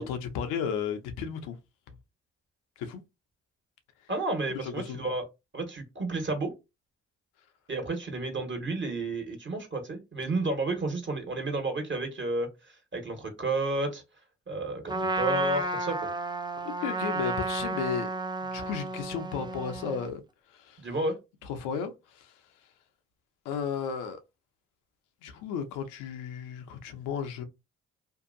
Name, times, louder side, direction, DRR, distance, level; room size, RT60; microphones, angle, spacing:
voice 1, 0.0-1.6 2.8-3.0 4.5-5.1 16.6-18.1 18.4-20.2 20.5-20.8 21.4-22.3 23.4-24.2 25.2-27.4, left 7 dB, 90° left, 0.6 m, -34 dB
voice 2, 4.1-5.2 5.5-6.5 7.7-14.0 14.5-16.1 20.8-21.2, right 2 dB, 40° right, 1.3 m, -31 dB
Trumpet, 14.9-20.1, right 3 dB, 15° right, 0.5 m, -32 dB
2.7 x 2.3 x 2.5 m
supercardioid pair, 55°, 30 cm